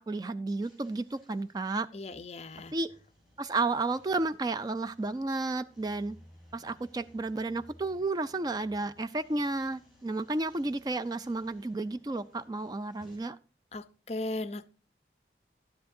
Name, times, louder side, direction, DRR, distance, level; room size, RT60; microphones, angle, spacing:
voice 1, 0.0-1.9 2.7-2.9 3.4-6.2 6.5-13.4, right 3 dB, 20° right, 13 dB, 0.3 m, -32 dB
sound 1, 0.6-13.2, equal, 5° right, 6.6 m, -61 dB
voice 2, 1.9-2.7 13.7-14.7, left 2 dB, 35° left, 14 dB, 0.5 m, -37 dB
12.0 x 10.0 x 2.6 m, 0.37 s
head